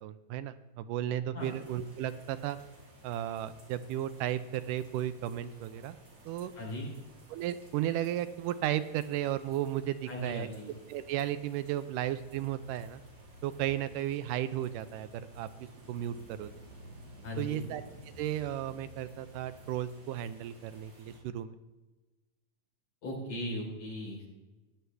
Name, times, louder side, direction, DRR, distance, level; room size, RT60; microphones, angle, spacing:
voice 1, 0.0-2.6 3.0-6.0 6.3-6.5 7.3-10.5 10.9-13.0 13.4-16.5 17.4-17.8 18.2-21.6, right 12 dB, 85° right, 12 dB, 2.2 m, -34 dB
sound 1, 1.4-21.2, equal, 70° right, 5.4 m, -54 dB
voice 2, 6.6-6.9 10.1-10.7 17.2-17.6 23.0-24.3, equal, 50° left, -3 dB, 5.0 m, -38 dB
16.0 x 11.0 x 3.4 m, 1.2 s
omnidirectional pair, 3.7 m